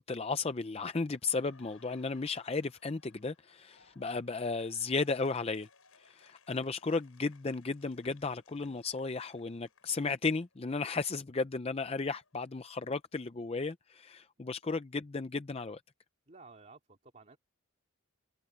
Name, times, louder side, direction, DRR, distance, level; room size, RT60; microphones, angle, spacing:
voice 1, 0.0-5.7 6.0-15.8, left 4 dB, 30° left, 0.5 m, -34 dB
Laughter, 1.1-10.9 11.3-13.3, left 5 dB, 75° left, 4.9 m, -65 dB
voice 2, 16.3-17.4, right 3 dB, 35° right, 2.7 m, -54 dB
head